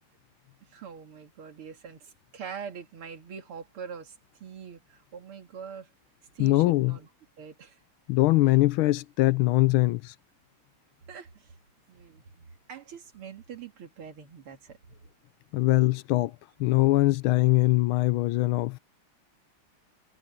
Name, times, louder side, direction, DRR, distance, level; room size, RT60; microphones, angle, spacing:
voice 1, 0.7-4.2 4.4-5.9 6.3-7.1 7.4-7.8 8.4-8.5 11.1-11.5 11.9-14.8, right 7 dB, 85° right, 2.9 m, -43 dB
voice 2, 6.4-7.0 8.1-10.1 15.5-16.3 16.6-18.8, left 19 dB, 80° left, 1.4 m, -22 dB
omnidirectional pair, 2.3 m